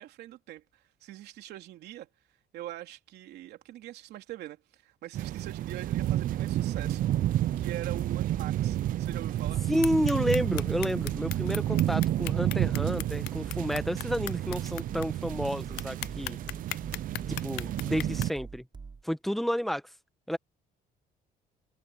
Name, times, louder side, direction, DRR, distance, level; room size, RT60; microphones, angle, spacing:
voice 1, 0.0-2.1 2.5-7.1 7.6-9.6, right 14 dB, 75° right, 3.2 m, -43 dB
sound 1, 5.1-18.3, right 13 dB, 55° right, 0.4 m, -30 dB
sound 2, 6.7-19.1, right 4 dB, 25° right, 6.1 m, -45 dB
voice 2, 9.7-16.4 17.3-18.6 19.0-19.8 20.3-20.4, equal, ahead, 1.2 m, -30 dB
sound 3, 9.8-15.0 15.4-15.5 15.8-18.2, left 18 dB, 75° left, 0.4 m, -37 dB
cardioid pair, 110°, 17 cm